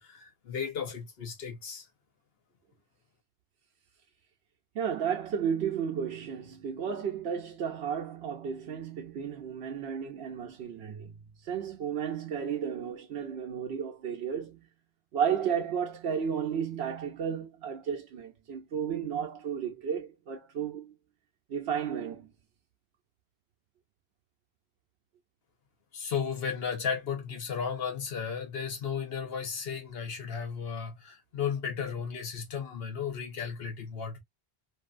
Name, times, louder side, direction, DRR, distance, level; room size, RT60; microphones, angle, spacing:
voice 1, 0.0-1.9 25.9-34.2, left 6 dB, 70° left, 1.1 m, -34 dB
voice 2, 4.7-14.7 15.1-20.9 21.5-22.3, right 7 dB, 85° right, 0.9 m, -33 dB
2.7 x 2.6 x 2.4 m
omnidirectional pair, 1.1 m